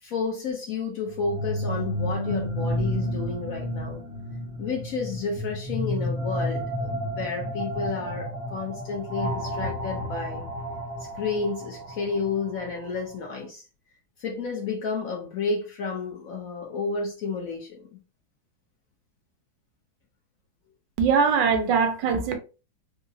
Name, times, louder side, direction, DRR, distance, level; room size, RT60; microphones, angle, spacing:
voice 1, 0.0-4.0 4.6-10.4 11.0-13.6 14.2-17.9, left 4 dB, 65° left, 0.9 m, -31 dB
sound 1, 1.1-12.9, equal, 15° right, 0.7 m, -31 dB
voice 2, 21.0-22.4, right 6 dB, 75° right, 1.2 m, -21 dB
3.7 x 2.0 x 2.6 m
omnidirectional pair, 2.0 m